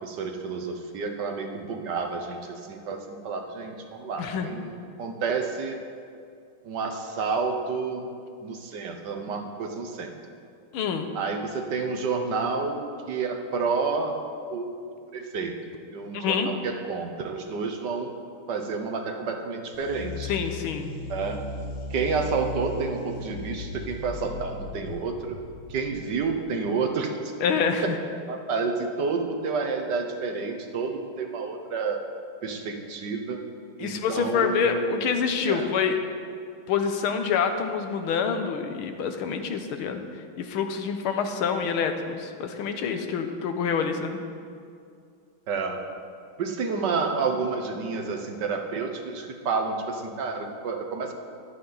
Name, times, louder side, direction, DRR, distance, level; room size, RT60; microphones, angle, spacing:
voice 1, 0.0-5.8 6.6-8.1 8.4-10.1 11.1-12.8 13.1-14.2 14.5-14.8 15.1-15.5 15.9-18.1 18.5-20.3 21.1-21.4 21.9-25.4 25.7-27.1 27.8-27.9 28.3-32.0 32.4-33.4 33.8-35.1 35.4-35.7 45.5-45.8 46.4-51.1, right 4 dB, 60° right, 4 dB, 1.5 m, -30 dB
voice 2, 4.2-4.5 10.7-11.1 16.1-16.5 20.3-20.9 27.4-28.0 33.8-36.0 36.7-40.0 40.4-44.2, left 6 dB, 85° left, 7 dB, 1.8 m, -26 dB
sound 1, 19.7-26.3, left 3 dB, 70° left, 2.3 m, -37 dB
22.5 x 8.5 x 4.0 m, 2.3 s
omnidirectional pair, 2.3 m